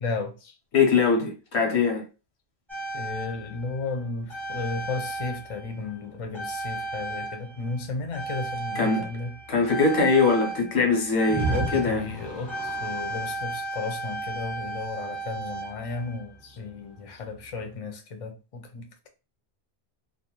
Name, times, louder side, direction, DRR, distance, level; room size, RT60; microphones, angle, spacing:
voice 1, 0.0-0.5 2.9-9.3 11.5-19.1, left 3 dB, 45° left, 0.5 m, -34 dB
voice 2, 0.7-2.0 8.7-9.0 9.5-12.0, left 4 dB, 80° left, 1.1 m, -22 dB
sound 1, 2.7-6.0 6.3-16.4 17.4-17.5, right 2 dB, 30° right, 0.8 m, -34 dB
2.5 x 2.1 x 2.9 m
omnidirectional pair, 1.1 m